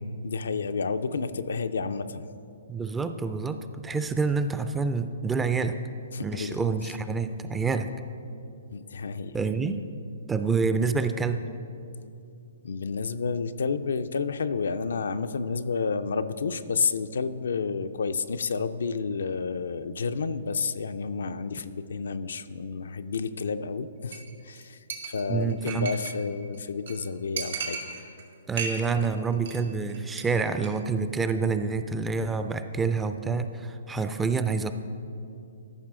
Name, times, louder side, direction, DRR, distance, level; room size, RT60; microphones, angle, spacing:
voice 1, 0.2-2.3 6.1-6.6 8.7-9.4 12.6-27.8, left 5 dB, 75° left, 10 dB, 0.4 m, -30 dB
voice 2, 2.7-5.8 6.2-7.9 9.3-9.8 10.3-11.4 25.3-25.9 28.5-34.7, right 4 dB, 10° right, 9 dB, 0.3 m, -27 dB
Chink clink, 24.1-24.3 24.6-24.7 24.9-26.2 26.5-26.6 26.9-27.0 27.4-28.2 28.5-29.1 29.3-29.6 29.9-30.2 30.5-30.7, right 5 dB, 70° right, 1.8 m, -35 dB
14.0 x 5.6 x 3.7 m, 2.6 s
hypercardioid pair, 135°, 0 cm